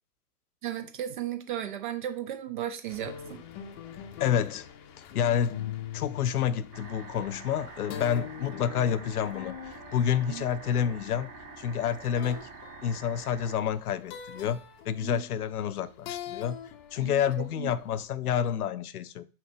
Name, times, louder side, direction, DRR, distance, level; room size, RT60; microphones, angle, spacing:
voice 1, 0.6-3.4 10.3-10.5 15.0-15.2 17.0-17.7, right 11 dB, 35° right, 0.4 m, -35 dB
sound 1, 2.9-18.1, left 9 dB, 30° left, 0.6 m, -44 dB
voice 2, 3.9-4.7 5.0-11.3 11.6-12.5 12.8-16.6 16.9-19.2, left 9 dB, 70° left, 0.5 m, -29 dB
sound 2, 6.7-13.5, right 5 dB, 75° right, 1.4 m, -47 dB
5.5 x 2.8 x 3.4 m
figure-of-eight pair, 100°, 47 cm